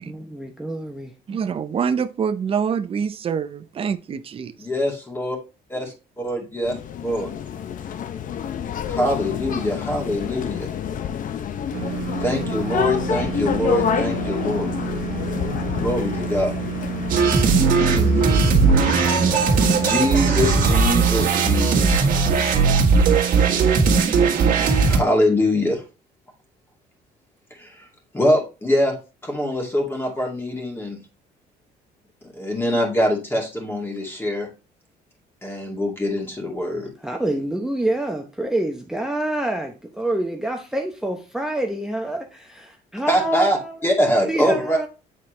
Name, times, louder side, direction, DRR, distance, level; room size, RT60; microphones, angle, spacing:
voice 1, 0.0-1.4 37.0-43.7 44.2-44.9, right 1 dB, 5° right, 0.8 m, -27 dB
voice 2, 1.3-4.5, right 7 dB, 35° right, 0.5 m, -25 dB
voice 3, 4.6-5.4 5.7-5.8 6.2-6.8 7.0-7.3 8.8-10.7 12.2-14.7 15.8-16.6 17.7-18.2 19.0-19.2 19.8-22.1 24.4-25.8 27.5-27.9 28.1-29.0 29.2-31.0 32.2-34.5 35.4-36.9 43.1-44.8, left 1 dB, 15° left, 2.3 m, -23 dB
sound 1, 6.6-20.8, left 8 dB, 50° left, 0.7 m, -28 dB
sound 2, 11.7-23.7, right 9 dB, 90° right, 1.2 m, -31 dB
sound 3, 17.1-25.0, right 5 dB, 55° right, 1.6 m, -18 dB
8.4 x 4.2 x 3.2 m
cardioid pair, 110°, 17 cm